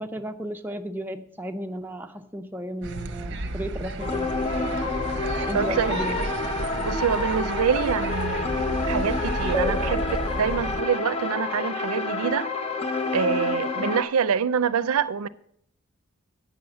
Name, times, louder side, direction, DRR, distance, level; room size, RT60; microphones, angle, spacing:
voice 1, 0.0-4.3 5.5-6.2 13.8-13.9, equal, 10° right, 0.6 m, -34 dB
sound 1, 2.8-10.8, right 2 dB, 50° right, 0.7 m, -32 dB
sound 2, 4.0-14.0, left 3 dB, 25° left, 0.8 m, -28 dB
voice 2, 5.5-6.3 6.8-12.5 13.1-15.3, right 7 dB, 85° right, 0.5 m, -26 dB
8.9 x 6.4 x 7.1 m
head